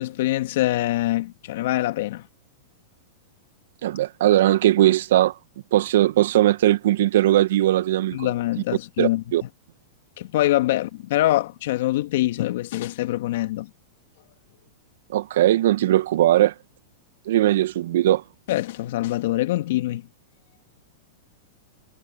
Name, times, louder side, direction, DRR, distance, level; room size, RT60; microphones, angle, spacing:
voice 1, 0.0-2.2 8.1-9.2 10.2-13.7 18.5-20.1, left 15 dB, 65° left, 2.2 m, -24 dB
voice 2, 3.8-5.4 5.7-8.3 9.0-9.4 15.1-16.5 17.3-18.2, right 13 dB, 70° right, 1.3 m, -19 dB
hypercardioid pair, 120°, 0 cm